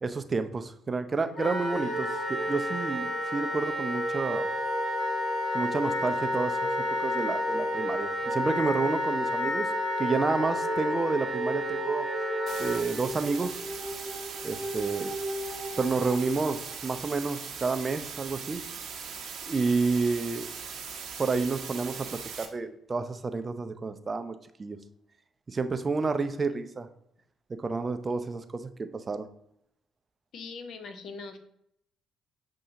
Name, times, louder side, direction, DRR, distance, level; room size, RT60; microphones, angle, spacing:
voice 1, 0.0-4.5 5.5-6.7 7.0-9.7 10.0-12.1 12.6-13.6 14.4-15.1 15.8-18.6 19.4-20.5 21.2-24.8 25.5-26.9 27.5-29.3, right 4 dB, 35° right, 9 dB, 0.4 m, -30 dB
Wind instrument woodwind instrument, 1.4-12.8, left 1 dB, 40° left, 1.8 m, -31 dB
sound 1, 1.7-16.8, right 1 dB, 15° right, 0.8 m, -37 dB
sound 2, 12.5-22.5, right 6 dB, 60° right, 0.7 m, -40 dB
voice 2, 30.3-31.4, left 4 dB, 60° left, 9 dB, 0.6 m, -41 dB
6.7 x 2.7 x 2.7 m, 0.75 s
hypercardioid pair, 45°, 0 cm